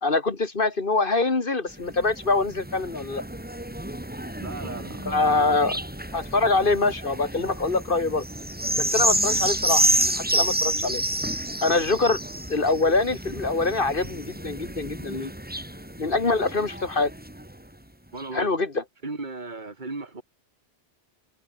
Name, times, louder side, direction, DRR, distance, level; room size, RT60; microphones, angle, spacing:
voice 1, 0.0-3.2 5.1-5.8 6.1-8.2 8.8-11.0 11.6-12.2 12.5-15.3 16.0-17.1 18.3-18.8, left 3 dB, 55° left, 2.1 m, -24 dB
sound 1, 1.7-17.6 18.2-18.3, right 1 dB, 10° right, 2.1 m, -29 dB
voice 2, 4.4-5.8 18.1-18.5 19.0-20.2, right 3 dB, 45° right, 2.8 m, -36 dB
omnidirectional pair, 1.1 m